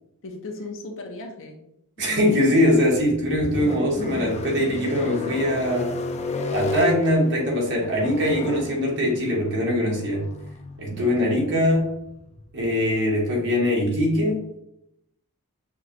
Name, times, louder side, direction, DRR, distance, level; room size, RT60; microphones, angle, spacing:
voice 1, 0.2-1.7 2.0-2.4 10.9-11.6, left 2 dB, 60° left, 3 dB, 0.8 m, -38 dB
voice 2, 2.0-5.9 6.5-10.3 10.8-11.9 12.5-14.6, left 1 dB, 55° right, -3 dB, 1.5 m, -22 dB
sound 1, 2.6-12.8, left 2 dB, 30° left, 0.4 m, -33 dB
6.0 x 2.4 x 2.9 m, 0.78 s
head